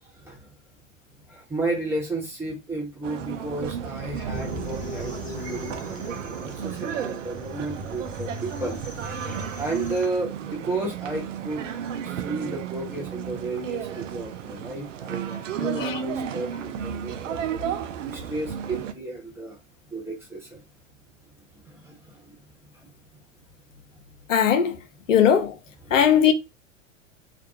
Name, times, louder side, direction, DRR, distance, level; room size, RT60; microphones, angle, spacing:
voice 1, 0.1-0.5 1.3-8.8 9.6-11.7 12.0-17.7 18.1-19.6 19.9-20.6 21.6-22.4 22.7-22.9 25.9-26.0, right 2 dB, 5° right, 1.0 m, -33 dB
sound 1, 3.0-18.9, right 8 dB, 75° right, 0.5 m, -33 dB
sound 2, 4.3-10.1, left 2 dB, 20° left, 0.9 m, -39 dB
voice 2, 24.3-24.8 25.1-25.6 25.9-26.3, left 8 dB, 75° left, 0.6 m, -19 dB
2.5 x 2.2 x 2.6 m
figure-of-eight pair, 95°, 38 cm